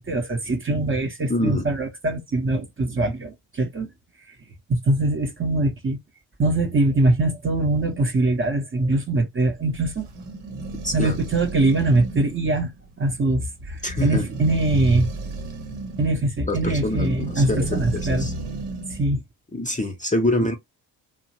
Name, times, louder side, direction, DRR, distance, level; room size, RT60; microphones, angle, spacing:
voice 1, 0.0-3.9 4.7-6.0 6.4-10.1 10.9-12.7 13.0-15.1 16.0-18.3 19.0-19.2, right 2 dB, 25° right, 0.7 m, -22 dB
voice 2, 1.3-1.6 10.8-11.1 13.8-14.3 16.5-18.3 19.5-20.6, left 1 dB, 15° left, 0.6 m, -25 dB
sound 1, 9.4-19.1, right 2 dB, 75° right, 0.9 m, -34 dB
2.8 x 2.0 x 2.7 m
hypercardioid pair, 50°, 49 cm